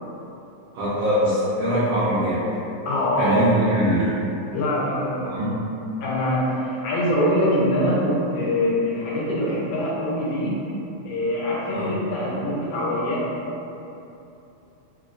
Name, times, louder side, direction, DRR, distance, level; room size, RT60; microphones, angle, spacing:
voice 1, 0.7-2.5 3.2-4.2 5.3-5.7 11.7-11.9, equal, 85° right, -11 dB, 1.4 m, -22 dB
voice 2, 2.9-3.4 4.5-5.4 6.0-10.6 11.0-13.3, left 1 dB, 75° left, -6 dB, 2.0 m, -24 dB
4.9 x 2.2 x 2.5 m, 2.9 s
omnidirectional pair, 3.6 m